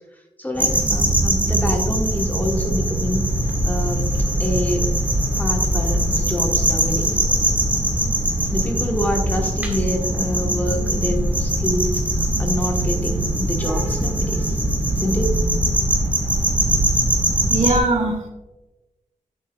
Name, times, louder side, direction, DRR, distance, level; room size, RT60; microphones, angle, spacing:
voice 1, 0.4-3.2 3.6-4.0 4.4-4.9 5.4-7.2 8.5-14.6 14.9-15.3, left 1 dB, 15° left, 1 dB, 1.2 m, -27 dB
sound 1, 0.6-17.8, right 1 dB, 10° right, 1.6 m, -21 dB
voice 2, 17.5-18.3, right 2 dB, 55° right, 1 dB, 2.1 m, -20 dB
10.0 x 8.8 x 2.3 m, 1.1 s
wide cardioid pair, 165°, 14 cm